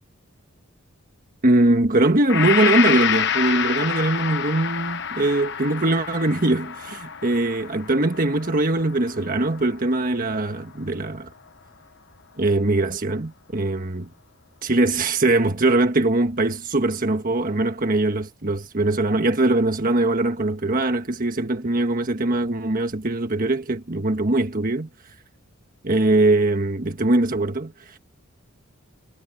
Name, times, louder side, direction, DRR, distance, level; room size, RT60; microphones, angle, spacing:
voice 1, 1.4-11.3 12.4-14.1 14.6-24.9 25.8-28.0, right 2 dB, 40° right, 1.5 m, -21 dB
Gong, 2.3-10.3, left 8 dB, 55° left, 1.2 m, -27 dB
head